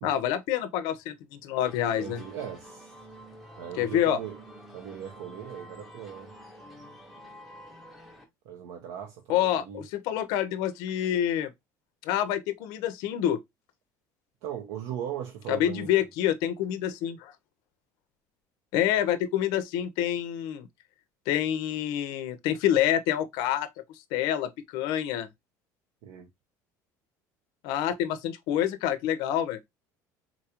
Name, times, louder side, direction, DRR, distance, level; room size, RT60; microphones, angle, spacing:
voice 1, 0.0-2.2 3.8-4.2 9.3-11.5 12.0-13.4 15.5-17.3 18.7-20.7 21.3-23.7 24.1-25.3 27.6-29.6, left 11 dB, 65° left, 0.5 m, -27 dB
sound 1, 1.6-8.2, equal, ahead, 0.6 m, -48 dB
voice 2, 2.0-2.9 3.6-4.4 4.7-6.3 8.4-9.9 14.4-15.9 26.0-26.3, right 9 dB, 90° right, 0.7 m, -38 dB
3.9 x 2.4 x 2.8 m
cardioid pair, 180°, 8 cm